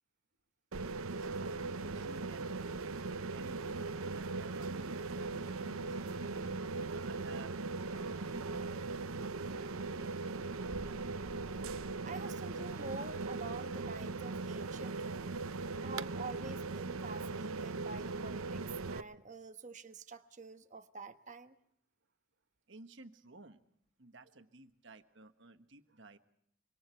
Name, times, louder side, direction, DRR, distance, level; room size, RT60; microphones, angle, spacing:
sound 1, 0.7-19.0, right 3 dB, 85° right, 0.8 m, -39 dB
sound 2, 1.1-4.6 5.1-7.2 7.7-9.0 9.2-10.6 10.9-12.1 12.6-13.5 13.8-15.0, equal, 20° left, 1.1 m, -60 dB
voice 1, 1.1-6.2 6.7-10.5 22.7-23.6 24.0-26.2, right 2 dB, 55° right, 8 dB, 1.4 m, -56 dB
sound 3, 10.3-18.3, equal, 5° right, 5.0 m, -59 dB
voice 2, 12.0-15.3 15.8-21.5, right 3 dB, 35° right, 8 dB, 1.2 m, -47 dB
26.0 x 24.5 x 4.6 m, 0.74 s
head